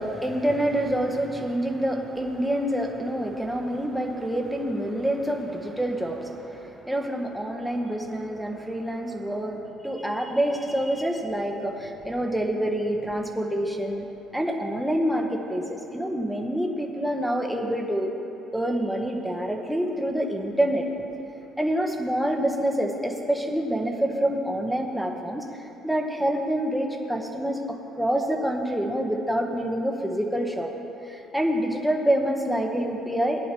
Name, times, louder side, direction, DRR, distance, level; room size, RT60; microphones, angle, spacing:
voice 1, 0.0-14.0 14.3-18.1 18.5-20.9 21.6-30.7 31.0-33.4, right 1 dB, ahead, 1 dB, 1.1 m, -27 dB
18.0 x 9.9 x 3.0 m, 2.9 s
cardioid pair, 125°, 0 cm